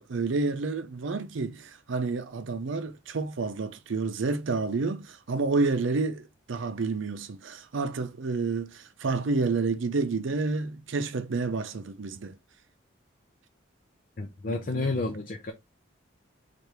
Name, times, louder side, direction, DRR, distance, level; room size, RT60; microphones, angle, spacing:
voice 1, 0.0-12.3 14.5-15.0, right 3 dB, 70° right, 0.5 m, -29 dB
voice 2, 14.2-15.5, left 3 dB, 45° left, 0.6 m, -30 dB
4.5 x 2.5 x 3.3 m
head